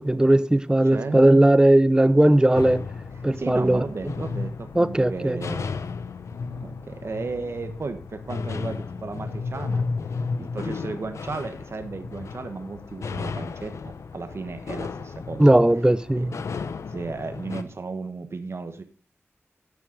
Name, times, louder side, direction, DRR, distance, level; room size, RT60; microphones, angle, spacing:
voice 1, 0.0-2.8 3.2-3.8 4.8-5.4 15.4-16.3, right 1 dB, 15° right, 0.6 m, -18 dB
voice 2, 0.8-1.2 3.3-5.7 6.5-9.8 10.4-15.5 16.1-16.4 16.9-18.8, right 4 dB, 60° right, 1.2 m, -34 dB
sound 1, 2.5-17.6, left 4 dB, 85° left, 0.7 m, -34 dB
11.0 x 6.2 x 5.0 m
cardioid pair, 55°, 5 cm